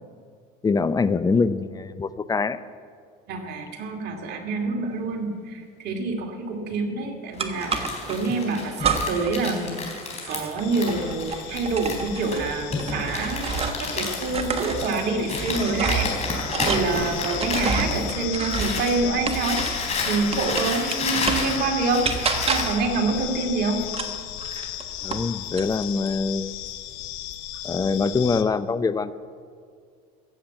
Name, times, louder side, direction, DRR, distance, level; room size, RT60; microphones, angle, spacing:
voice 1, 0.6-2.6 25.0-26.7 27.6-29.1, left 4 dB, 20° left, 14 dB, 0.6 m, -24 dB
voice 2, 3.3-9.8 10.3-22.1 22.5-23.8, right 3 dB, 55° right, 2 dB, 2.6 m, -27 dB
Crumpling crinkling, 7.4-19.0 19.3-22.7, left 3 dB, 35° left, 3.9 m, -31 dB
sound 1, 7.4-8.2 8.8-9.4 9.6-13.9 14.2-19.9 20.3-21.6 22.0-22.9 23.9-25.3 25.6-26.2, right 5 dB, 30° right, 1.3 m, -29 dB
sound 2, 10.6-28.4, left 13 dB, 75° left, 1.0 m, -35 dB
15.5 x 7.3 x 8.0 m, 2.2 s
supercardioid pair, 105°, 20 cm